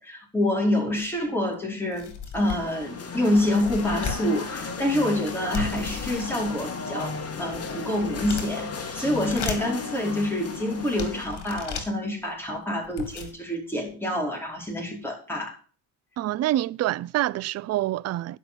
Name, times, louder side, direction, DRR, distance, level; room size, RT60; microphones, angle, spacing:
voice 1, 0.0-15.6, left 1 dB, 5° left, 4.9 m, -27 dB
sound 1, 1.0-1.1 1.5-1.6 1.9-2.8 3.4-4.3 5.5-6.6 7.2-8.7 9.1-9.8 10.4-10.5 11.0-11.9 12.6-12.7 12.8-13.3, left 6 dB, 55° left, 2.8 m, -35 dB
sound 2, 2.4-11.3, left 4 dB, 30° left, 2.2 m, -35 dB
voice 2, 16.2-18.4, right 14 dB, 35° right, 0.4 m, -26 dB
11.0 x 5.7 x 7.1 m
supercardioid pair, 75°, 48 cm